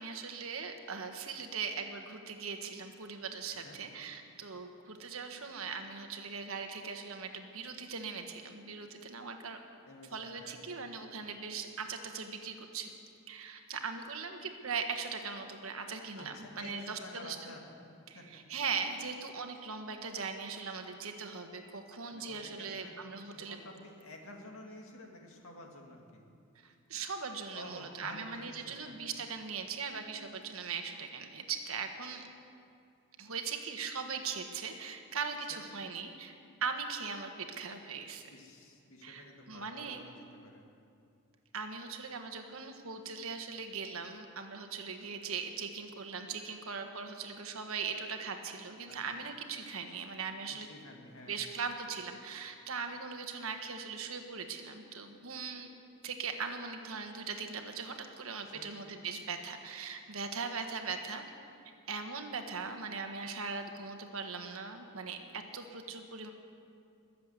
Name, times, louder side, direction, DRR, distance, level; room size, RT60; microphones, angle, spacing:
voice 1, 0.0-9.6 10.1-12.9 13.3-17.4 18.1-23.6 26.5-32.2 33.2-36.3 36.6-38.3 39.0-40.0 41.5-50.7 51.3-55.7 56.0-61.2 61.9-66.3, right 5 dB, 75° right, 5 dB, 1.4 m, -40 dB
voice 2, 9.9-10.6 16.2-17.6 18.1-18.3 22.1-22.9 23.3-26.2 27.5-28.9 35.5-35.6 38.3-40.6 48.9-49.3 50.5-51.4 58.5-58.7, left 1 dB, 70° left, 1 dB, 2.3 m, -50 dB
21.5 x 7.7 x 8.3 m, 2.4 s
head